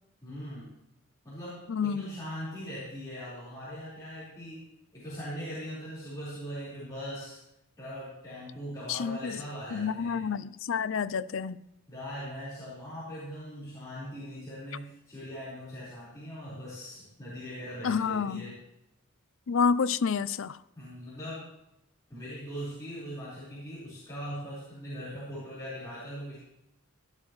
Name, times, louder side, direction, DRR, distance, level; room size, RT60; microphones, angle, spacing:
voice 1, 0.2-0.8 1.2-4.7 4.9-7.4 7.8-10.2 11.9-18.5 20.7-21.5 22.1-26.4, equal, 15° left, -11 dB, 4.5 m, -40 dB
voice 2, 1.7-2.1 8.9-9.4 9.7-11.6 17.8-18.4 19.5-20.6, left 6 dB, 65° left, 15 dB, 0.5 m, -29 dB
16.0 x 11.5 x 3.2 m, 0.85 s
head